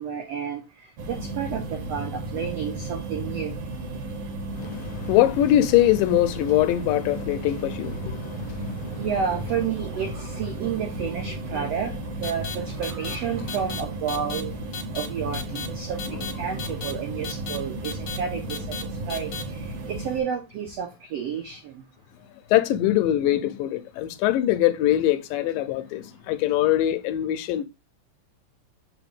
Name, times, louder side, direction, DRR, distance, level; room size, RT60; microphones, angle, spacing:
voice 1, 0.0-3.5 8.9-11.9 12.2-14.5 14.9-18.7 19.1-21.8, right 7 dB, 90° right, 1.4 m, -31 dB
sound 1, 1.0-20.2, right 2 dB, 60° right, 1.7 m, -34 dB
voice 2, 4.6-9.1 16.6-16.7 22.5-27.6, left 13 dB, 85° left, 2.2 m, -23 dB
sound 2, 12.2-12.6 12.8-13.2 13.5-13.8 14.1-14.4 14.7-15.1 15.3-15.7 16.0-16.3 16.6-16.9 17.2-17.6 17.8-18.2 18.5-18.8 19.1-19.4, left 7 dB, 65° left, 1.6 m, -34 dB
6.5 x 4.9 x 3.4 m
omnidirectional pair, 4.1 m